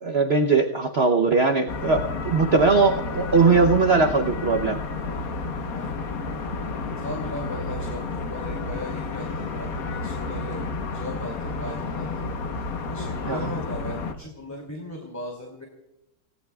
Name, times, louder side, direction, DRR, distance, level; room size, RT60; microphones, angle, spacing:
voice 1, 0.0-4.8 13.2-13.5, right 4 dB, 55° right, 5 dB, 0.7 m, -20 dB
sound 1, 1.7-14.1, left 3 dB, 50° left, 1.4 m, -31 dB
voice 2, 6.8-10.6 10.9-12.3 12.9-15.7, left 1 dB, 10° left, 0 dB, 2.4 m, -37 dB
27.5 x 18.0 x 2.3 m, 0.91 s
omnidirectional pair, 2.1 m